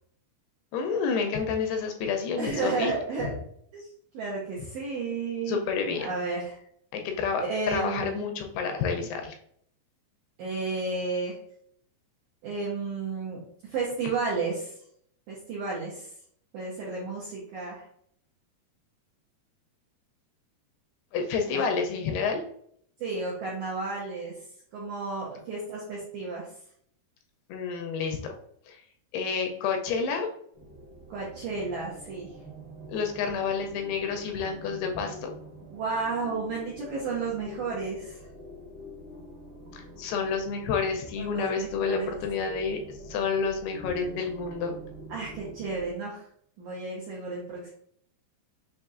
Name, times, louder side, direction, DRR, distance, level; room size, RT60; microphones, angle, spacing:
voice 1, 0.7-2.9 5.5-6.1 6.9-9.4 21.1-22.4 27.5-28.3 28.7-28.8 29.1-30.3 32.9-35.3 39.7-42.8 43.1-44.7, left 5 dB, 80° left, 3 dB, 2.4 m, -29 dB
voice 2, 2.4-3.3 3.7-3.9 4.1-5.6 6.0-6.5 7.4-8.3 10.4-11.4 12.4-13.4 13.7-14.7 15.3-16.1 16.5-17.8 21.5-21.6 23.0-24.4 24.7-26.5 31.1-32.3 35.7-38.2 41.2-42.1 45.1-46.2 46.6-47.7, right 4 dB, 80° right, -5 dB, 1.7 m, -32 dB
sound 1, 30.5-46.0, left 1 dB, 45° right, 1.1 m, -45 dB
6.3 x 2.7 x 2.4 m, 0.67 s
omnidirectional pair, 4.7 m